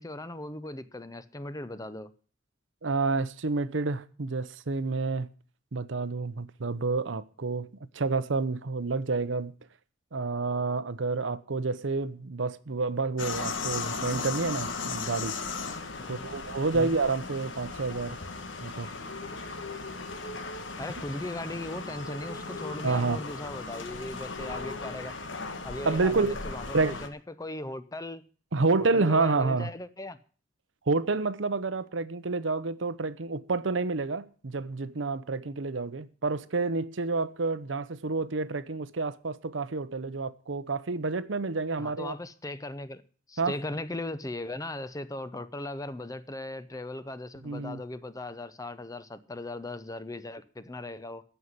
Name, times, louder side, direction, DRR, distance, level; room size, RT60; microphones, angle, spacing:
voice 1, 0.0-2.1 16.0-16.3 16.7-16.9 20.8-25.1 25.6-28.2 28.8-30.2 41.8-43.0 43.3-51.2, left 1 dB, 20° left, 0.7 m, -38 dB
voice 2, 2.8-5.3 5.7-7.7 7.9-9.5 10.1-15.4 16.1-18.2 18.6-18.9 22.8-23.2 25.8-26.4 26.7-27.0 28.5-29.7 30.9-42.1 43.4-43.6 47.4-47.8, right 3 dB, 85° right, 0.8 m, -29 dB
sound 1, 13.2-27.1, left 4 dB, 85° left, 1.4 m, -37 dB
14.0 x 5.7 x 9.5 m
head